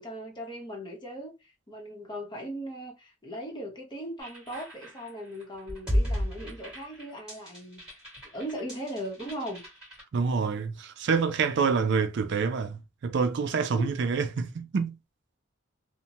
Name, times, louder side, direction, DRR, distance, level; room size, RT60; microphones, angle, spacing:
voice 1, 0.0-7.8 8.3-9.6 13.7-13.9, equal, 25° left, 0.9 m, -38 dB
sound 1, 4.2-10.0, equal, 5° right, 1.7 m, -34 dB
voice 2, 10.1-15.0, right 5 dB, 65° right, 0.4 m, -27 dB
2.8 x 2.1 x 2.8 m
head